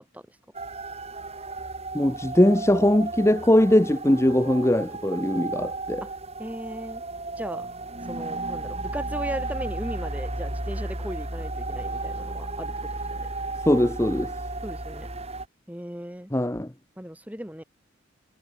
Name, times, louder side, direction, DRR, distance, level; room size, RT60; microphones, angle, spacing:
sound 1, 0.5-15.5, right 2 dB, 30° right, 5.2 m, -34 dB
voice 1, 1.9-6.0 13.7-14.3 16.3-16.7, left 1 dB, 15° left, 1.0 m, -21 dB
voice 2, 6.4-7.0 7.4-7.7 8.1-13.3 14.6-15.1 15.7-16.3 17.0-17.6, equal, 10° right, 3.4 m, -37 dB
head